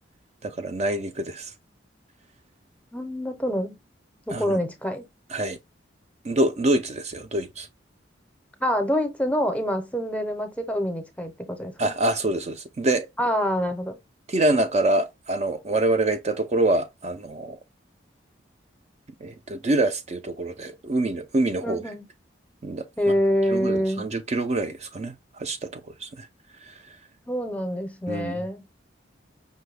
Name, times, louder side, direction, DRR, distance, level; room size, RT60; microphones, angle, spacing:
voice 1, 0.4-1.5 4.3-4.6 5.3-5.6 6.2-7.7 11.8-13.1 14.3-17.6 19.2-21.8 22.6-22.9 23.5-26.3 26.6-27.0 28.1-28.4, right 2 dB, 35° right, 0.3 m, -26 dB
voice 2, 2.9-3.7 4.3-5.1 8.6-11.9 13.2-14.0 21.6-22.0 23.0-24.1 27.3-28.6, equal, 5° left, 0.6 m, -26 dB
5.4 x 2.2 x 3.2 m
head